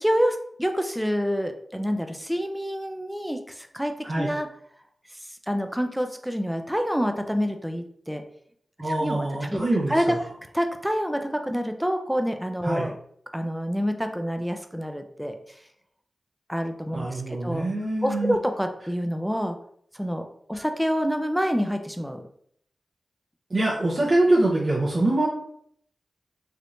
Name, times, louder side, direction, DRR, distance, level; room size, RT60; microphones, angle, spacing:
voice 1, 0.0-4.5 5.3-8.2 8.9-10.2 10.5-12.9 13.3-15.4 16.5-17.6 18.0-19.6 19.9-20.2 20.5-22.2, equal, 5° right, 6 dB, 0.5 m, -27 dB
voice 2, 8.8-10.2 12.6-12.9 16.9-18.4 20.5-20.6 23.5-25.3, right 2 dB, 50° right, -5 dB, 0.7 m, -24 dB
3.4 x 2.8 x 2.6 m, 0.66 s
cardioid pair, 50°, 0 cm